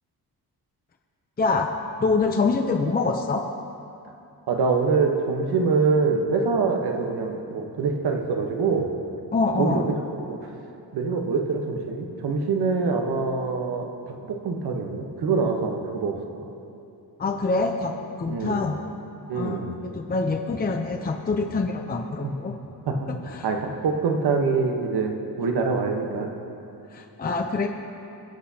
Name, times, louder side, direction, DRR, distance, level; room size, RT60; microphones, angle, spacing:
voice 1, 1.4-1.7 2.0-3.5 9.3-9.9 17.2-18.8 19.3-22.5 23.3-23.5 26.9-27.7, left 3 dB, 25° left, 4 dB, 0.6 m, -25 dB
voice 2, 4.5-8.9 9.6-10.0 10.3-10.5 10.9-16.2 18.3-18.7 19.3-19.8 22.2-22.3 22.9-26.3, right 4 dB, 85° right, 3 dB, 1.2 m, -25 dB
21.0 x 8.2 x 2.8 m, 2.7 s
cardioid pair, 105°, 38 cm